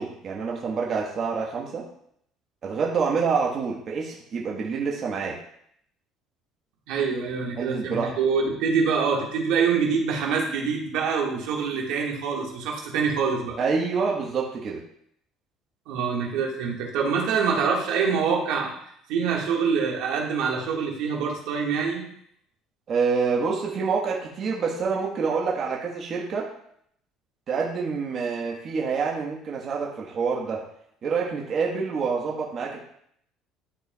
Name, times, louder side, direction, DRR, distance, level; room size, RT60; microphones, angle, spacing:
voice 1, 0.0-1.8 2.6-5.4 7.6-8.1 13.6-14.8 22.9-26.5 27.5-30.6 31.0-32.8, right 5 dB, 45° right, -2 dB, 1.2 m, -27 dB
voice 2, 6.9-13.6 15.9-18.7 19.1-22.1, right 5 dB, 80° right, -1 dB, 1.6 m, -25 dB
11.5 x 4.4 x 2.3 m, 0.69 s
cardioid pair, 115°, 0 cm